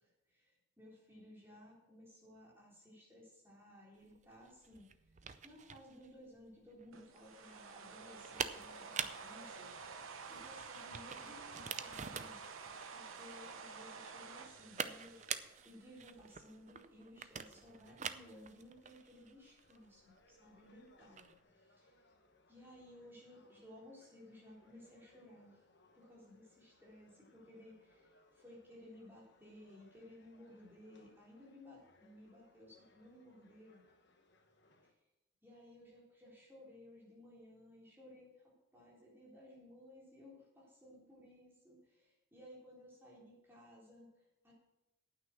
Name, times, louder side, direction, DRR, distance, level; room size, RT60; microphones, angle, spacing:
voice 1, 0.0-4.9 5.4-12.4 12.9-22.0 22.5-25.6 25.9-33.8 35.4-44.5, left 1 dB, 10° right, -5 dB, 3.8 m, -58 dB
sound 1, 4.0-21.4, right 7 dB, 35° right, 0.5 m, -47 dB
sound 2, 6.9-16.1, right 5 dB, 80° right, 0.9 m, -50 dB
sound 3, 17.6-34.9, left 2 dB, 55° left, 1.3 m, -70 dB
9.5 x 8.9 x 6.1 m, 0.93 s
head